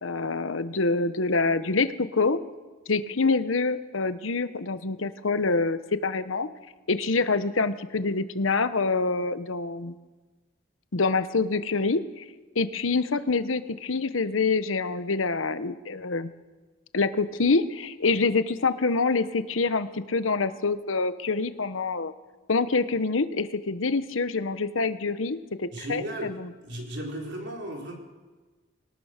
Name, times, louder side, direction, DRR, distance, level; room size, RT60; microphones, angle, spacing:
voice 1, 0.0-2.4 2.9-6.5 6.9-9.9 10.9-12.3 12.5-16.3 16.9-22.1 22.5-26.5, left 3 dB, 75° left, 12 dB, 1.0 m, -26 dB
voice 2, 25.7-26.3 26.6-27.9, right 1 dB, 60° right, 0 dB, 4.4 m, -35 dB
21.5 x 18.5 x 6.6 m, 1.3 s
head